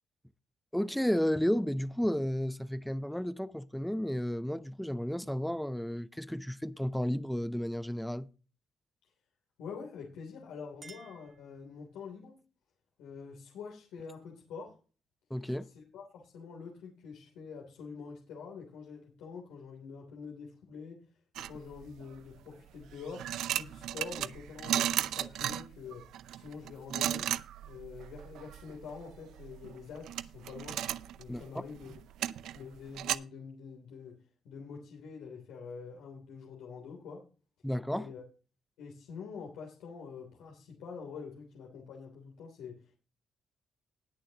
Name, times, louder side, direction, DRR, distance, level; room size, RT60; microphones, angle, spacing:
voice 1, 0.7-8.3 15.3-15.7 31.3-31.6 37.6-38.1, equal, 5° left, 0.7 m, -32 dB
voice 2, 9.6-12.3 13.0-14.8 15.6-21.0 21.4-27.3 27.6-30.8 31.2-31.9 32.5-34.2 34.4-37.2 37.9-38.2 38.8-43.0, left 5 dB, 90° left, 3.2 m, -46 dB
Chink clink, 10.3-12.1, right 4 dB, 40° right, 2.7 m, -56 dB
sound 1, 21.4-22.1 22.8-33.2, right 11 dB, 80° right, 0.6 m, -35 dB
19.5 x 7.0 x 2.9 m
cardioid pair, 90°, 0 cm